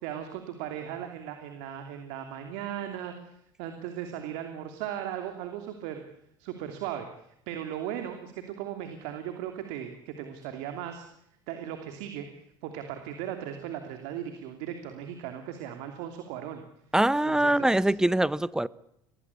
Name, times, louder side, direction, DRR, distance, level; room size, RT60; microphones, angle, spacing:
voice 1, 0.0-6.0 6.4-7.1 7.5-11.1 11.5-12.3 12.6-16.6 17.2-17.9, right 10 dB, 75° right, 6 dB, 2.9 m, -37 dB
voice 2, 16.9-18.7, right 1 dB, 5° right, 19 dB, 0.9 m, -23 dB
25.0 x 19.0 x 8.4 m, 0.75 s
supercardioid pair, 95°, 11 cm